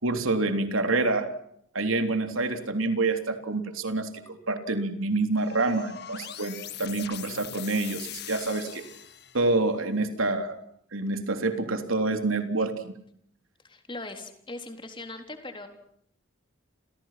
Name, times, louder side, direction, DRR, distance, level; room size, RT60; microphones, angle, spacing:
voice 1, 0.0-1.3 1.7-8.8 9.3-10.6 10.9-12.9, right 2 dB, 85° right, 7 dB, 3.6 m, -27 dB
sound 1, 5.3-9.6, left 10 dB, 55° left, 2.1 m, -41 dB
voice 2, 13.6-15.7, left 2 dB, 25° left, 5 dB, 3.9 m, -40 dB
30.0 x 29.0 x 6.0 m, 0.68 s
head